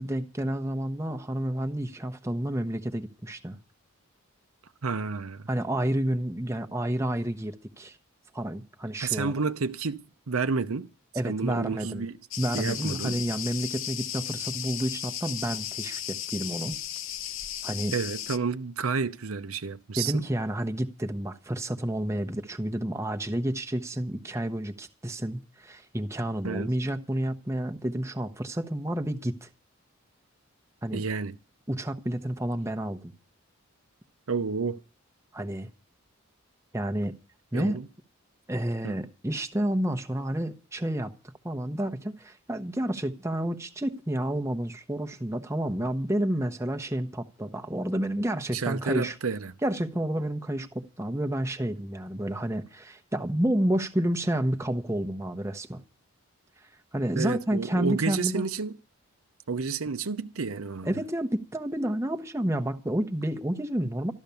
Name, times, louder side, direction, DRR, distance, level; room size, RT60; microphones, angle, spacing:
voice 1, 0.0-3.6 5.5-8.0 8.3-9.3 11.1-12.1 12.4-16.8 17.6-17.9 20.0-29.5 30.8-31.0 31.7-33.1 35.3-35.7 36.7-37.1 37.5-37.8 38.5-41.1 41.4-49.1 49.6-55.8 56.9-58.5 60.8-64.1, right 1 dB, 15° right, 0.9 m, -30 dB
voice 2, 4.8-5.5 9.0-10.0 10.3-10.9 11.2-12.2 12.5-13.2 17.9-20.2 26.4-26.7 30.9-31.4 34.3-34.8 37.5-37.9 38.8-38.9 48.5-49.5 57.2-58.8 59.5-60.9, right 4 dB, 75° right, 0.8 m, -30 dB
Cricket, 12.3-18.4, left 11 dB, 65° left, 0.7 m, -35 dB
13.5 x 12.0 x 6.9 m
head